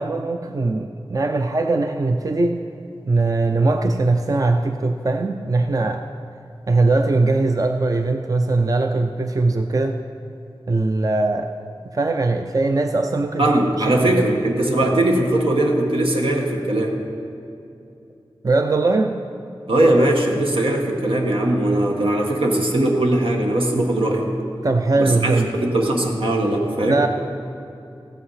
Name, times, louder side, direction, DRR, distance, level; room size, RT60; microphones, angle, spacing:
voice 1, 0.0-2.7 3.1-6.1 6.7-10.0 10.7-11.6 11.9-14.4 18.4-19.2 24.6-25.5 26.9-27.1, right 3 dB, 40° right, 6 dB, 0.5 m, -20 dB
voice 2, 13.4-17.0 19.7-24.3 25.0-27.0, right 1 dB, 85° right, 0 dB, 1.5 m, -20 dB
15.0 x 8.5 x 5.7 m, 2.7 s
wide cardioid pair, 85°, 9 cm